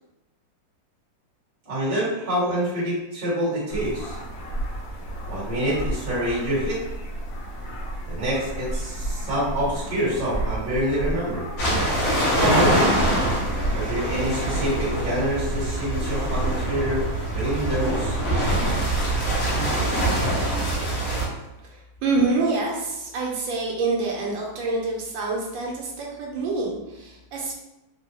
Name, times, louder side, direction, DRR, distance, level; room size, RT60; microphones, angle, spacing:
voice 1, 1.6-4.1 5.3-6.8 8.1-11.4 12.3-13.0 13.7-17.0 17.3-18.2, equal, 20° right, -9 dB, 1.0 m, -26 dB
sound 1, 3.7-19.6, right 1 dB, 70° left, 1.0 m, -32 dB
sound 2, 11.6-21.3, right 1 dB, 85° left, 1.6 m, -24 dB
voice 2, 21.6-27.5, right 3 dB, 85° right, -2 dB, 1.4 m, -26 dB
3.7 x 2.1 x 2.9 m, 0.94 s
omnidirectional pair, 2.0 m